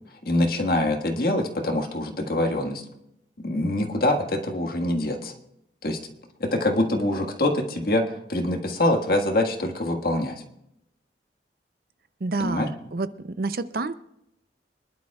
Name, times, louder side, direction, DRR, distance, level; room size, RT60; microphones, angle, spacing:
voice 1, 0.2-2.8 3.4-5.3 5.8-6.0 6.4-10.4 12.4-12.7, left 1 dB, 55° left, 4 dB, 1.6 m, -24 dB
voice 2, 12.2-13.9, right 3 dB, 55° right, 12 dB, 0.6 m, -29 dB
25.5 x 11.5 x 2.4 m, 0.83 s
head